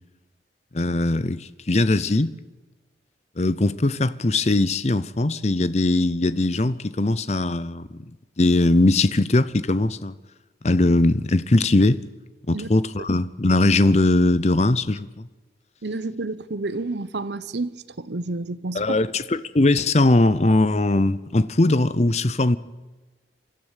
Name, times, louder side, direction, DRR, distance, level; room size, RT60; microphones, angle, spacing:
voice 1, 0.7-2.3 3.4-8.0 8.4-10.1 10.6-12.0 12.5-15.2 18.7-22.6, left 2 dB, 35° left, 0.7 m, -20 dB
voice 2, 15.8-19.0, right 2 dB, 75° right, 0.9 m, -30 dB
24.5 x 14.0 x 9.1 m
head